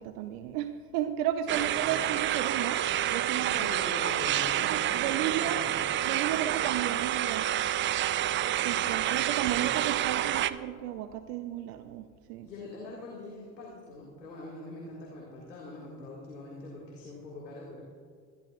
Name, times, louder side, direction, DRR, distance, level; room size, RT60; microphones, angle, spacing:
voice 1, 0.0-2.8 3.1-3.7 4.6-5.6 6.0-7.5 8.5-12.0 12.3-12.5, right 11 dB, 65° right, 9 dB, 0.8 m, -34 dB
sound 1, 1.5-10.5, right 12 dB, 25° right, 0.3 m, -28 dB
voice 2, 1.6-2.1 3.4-5.9 6.3-6.7 8.9-9.7 12.4-17.8, left 2 dB, 90° left, -4 dB, 2.1 m, -43 dB
23.5 x 12.0 x 2.4 m, 2.1 s
hypercardioid pair, 65°, 50 cm